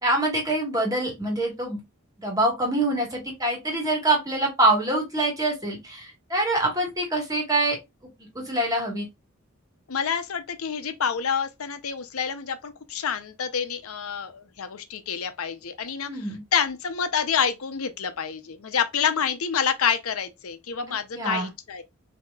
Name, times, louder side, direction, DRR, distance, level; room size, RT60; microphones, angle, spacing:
voice 1, 0.0-1.8 2.2-7.8 8.3-9.1 16.1-16.4 21.2-21.5, right 2 dB, 15° right, 1.5 m, -25 dB
voice 2, 9.9-21.8, left 7 dB, 85° left, 0.7 m, -28 dB
5.9 x 2.8 x 2.3 m
head